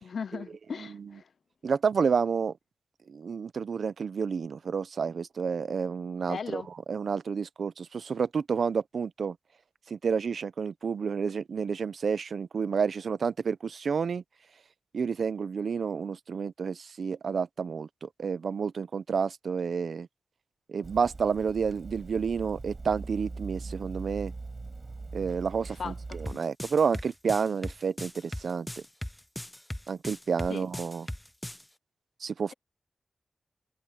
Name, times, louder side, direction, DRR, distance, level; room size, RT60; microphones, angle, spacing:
voice 1, 0.0-1.2 6.3-6.7 25.8-26.4 30.5-30.7, left 6 dB, 70° left, 0.5 m, -38 dB
voice 2, 0.8-1.1 1.6-2.5 3.1-6.6 6.9-9.4 9.9-14.2 14.9-20.1 20.7-24.3 25.1-28.8 29.9-31.1 32.2-32.5, right 6 dB, 70° right, 0.6 m, -30 dB
Water tap faucet / Sink (filling or washing), 20.8-26.3, right 3 dB, 35° right, 5.3 m, -41 dB
sound 1, 26.3-31.6, left 1 dB, 5° left, 0.5 m, -38 dB
wide cardioid pair, 140°, 0 cm